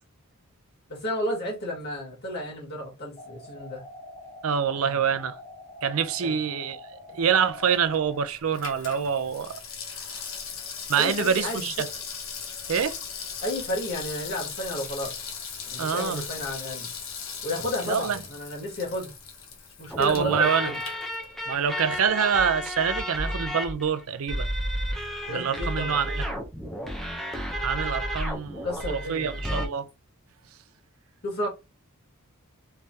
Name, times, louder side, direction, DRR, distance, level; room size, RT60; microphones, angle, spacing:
voice 1, 0.9-3.8 4.8-5.0 6.2-6.4 11.0-11.7 13.4-15.1 15.6-16.9 17.4-19.1 19.8-20.8 25.3-26.0 28.6-29.4 31.2-31.5, left 1 dB, 45° left, 1.9 m, -32 dB
sound 1, 3.2-8.2, left 2 dB, 30° left, 0.9 m, -45 dB
voice 2, 4.4-5.4 5.8-6.8 7.1-9.6 10.0-10.2 10.9-11.9 12.7-13.0 15.8-16.2 17.8-18.2 20.0-20.7 21.5-24.5 25.3-26.2 27.6-29.9, right 7 dB, 70° right, 0.5 m, -26 dB
Water tap faucet / Sink (filling or washing), 7.4-21.7 22.0-22.1, left 6 dB, 65° left, 0.9 m, -38 dB
sound 2, 19.9-29.7, equal, ahead, 0.6 m, -32 dB
3.4 x 3.3 x 2.7 m
head